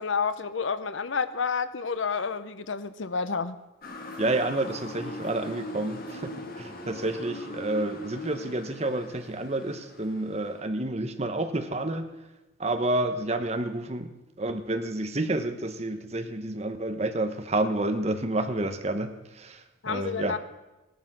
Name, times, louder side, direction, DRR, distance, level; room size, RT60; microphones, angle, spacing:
voice 1, 0.0-3.6 19.8-20.4, left 5 dB, 80° left, 13 dB, 0.8 m, -29 dB
Motor vehicle (road) / Siren, 3.8-10.6, left 1 dB, 50° left, 1.6 m, -40 dB
voice 2, 4.2-12.1 12.6-14.1 14.4-20.4, right 2 dB, 35° right, 8 dB, 1.0 m, -29 dB
17.5 x 11.5 x 6.1 m, 1.1 s
head